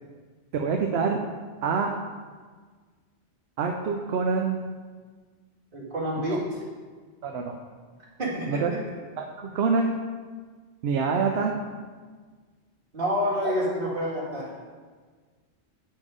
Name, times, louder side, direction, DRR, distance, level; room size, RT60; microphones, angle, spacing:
voice 1, 0.5-1.2 1.6-1.9 3.6-4.7 7.2-7.5 8.5-8.7 9.2-10.0 10.8-11.5 13.4-13.5, right 5 dB, 65° right, 2 dB, 0.8 m, -26 dB
voice 2, 5.7-6.4 8.2-8.6 12.9-14.5, equal, 50° right, -5 dB, 2.1 m, -28 dB
8.6 x 4.5 x 4.8 m, 1.5 s
omnidirectional pair, 1.2 m